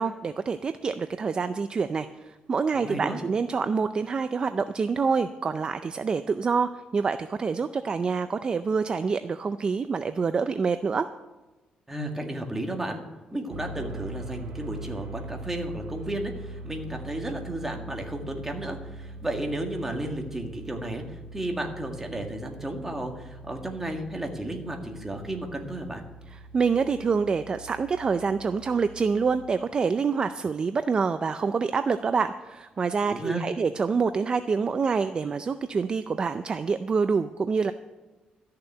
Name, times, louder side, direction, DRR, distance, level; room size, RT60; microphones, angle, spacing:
voice 1, 0.0-11.1 26.5-37.7, right 5 dB, 30° right, 10 dB, 0.4 m, -26 dB
voice 2, 2.7-3.2 11.9-13.0 13.3-26.0 33.1-33.4, right 1 dB, 15° right, 2 dB, 1.8 m, -33 dB
sound 1, 13.5-29.6, right 2 dB, 80° right, 2.2 m, -42 dB
13.5 x 6.7 x 9.1 m, 1.2 s
cardioid pair, 135°, 3 cm